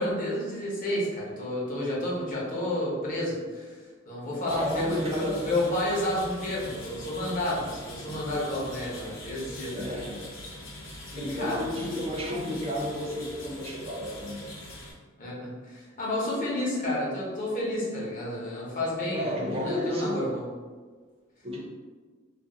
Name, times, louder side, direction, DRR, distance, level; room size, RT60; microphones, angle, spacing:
voice 1, 0.0-3.8 4.1-9.8 11.1-11.6 15.2-20.4, left 1 dB, 45° left, -6 dB, 0.9 m, -30 dB
voice 2, 4.2-5.5 8.0-8.2 9.7-10.2 10.6-14.5 19.1-20.2 21.4-21.6, left 1 dB, 30° right, -2 dB, 0.6 m, -32 dB
sound 1, 4.5-14.9, left 1 dB, 90° left, 0.6 m, -43 dB
2.5 x 2.0 x 3.7 m, 1.5 s
head